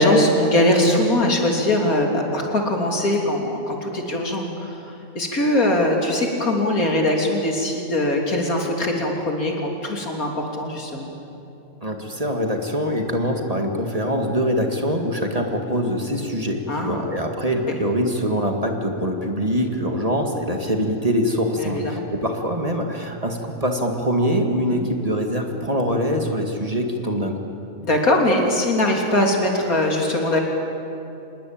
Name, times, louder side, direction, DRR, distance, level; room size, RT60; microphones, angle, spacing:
voice 1, 0.0-4.8 5.2-11.1 16.7-17.0 17.7-17.8 21.6-22.0 24.7-24.9 27.8-30.4, left 1 dB, 80° left, 1 dB, 3.7 m, -21 dB
voice 2, 11.8-27.5, equal, 25° right, 3 dB, 2.1 m, -24 dB
26.5 x 20.5 x 8.9 m, 2.8 s
omnidirectional pair, 1.5 m